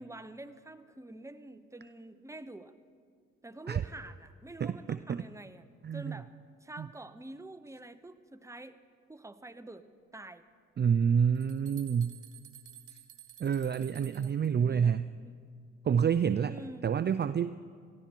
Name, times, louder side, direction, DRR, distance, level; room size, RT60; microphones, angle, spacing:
voice 1, 0.0-2.7 3.4-5.7 5.9-6.3 6.6-8.8 9.1-9.9 10.1-10.4 13.7-15.4 16.5-16.8, right 2 dB, 10° right, 11 dB, 0.9 m, -47 dB
voice 2, 4.6-5.2 5.8-6.2 6.8-6.9 10.8-12.2 13.4-15.1 15.8-17.5, right 7 dB, 35° right, 13 dB, 0.4 m, -28 dB
sound 1, 11.0-14.5, right 11 dB, 75° right, 1.2 m, -53 dB
18.5 x 14.0 x 4.5 m, 2.1 s
supercardioid pair, 50°, 31 cm